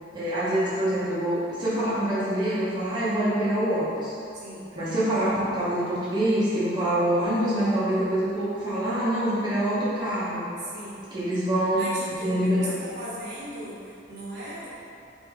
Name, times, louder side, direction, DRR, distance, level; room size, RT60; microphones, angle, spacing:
voice 1, 0.1-4.1 4.8-10.4 11.1-12.7, right 1 dB, 25° right, -10 dB, 0.6 m, -25 dB
voice 2, 4.3-4.9 10.6-11.0 11.7-14.7, right 1 dB, 60° right, -8 dB, 1.0 m, -38 dB
3.1 x 3.1 x 3.5 m, 2.6 s
head